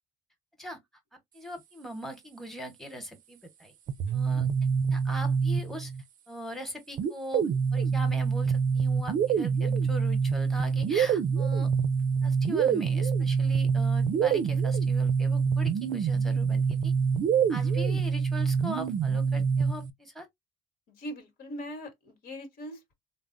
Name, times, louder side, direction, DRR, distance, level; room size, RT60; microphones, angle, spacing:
voice 1, 1.3-3.7 4.1-4.5 4.9-5.9 6.3-11.7 12.2-16.9 17.5-20.3, equal, ahead, 1.0 m, -41 dB
sound 1, 3.9-6.0 7.0-19.9, right 6 dB, 50° right, 0.4 m, -26 dB
voice 2, 4.1-4.4 20.9-22.9, equal, 65° left, 1.2 m, -41 dB
3.5 x 2.0 x 2.4 m
cardioid pair, 110°, 17 cm